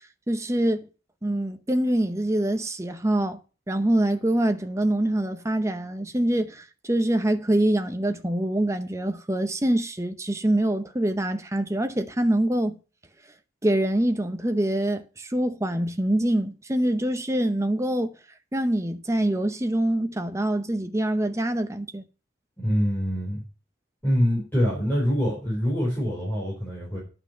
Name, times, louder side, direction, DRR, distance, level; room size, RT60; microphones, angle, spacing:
voice 1, 0.3-0.9 1.2-3.4 3.7-12.8 13.6-18.1 18.5-22.0, right 1 dB, 15° right, 0.8 m, -25 dB
voice 2, 22.6-23.4 24.0-27.0, equal, 10° left, 4.2 m, -25 dB
9.9 x 5.9 x 6.4 m
head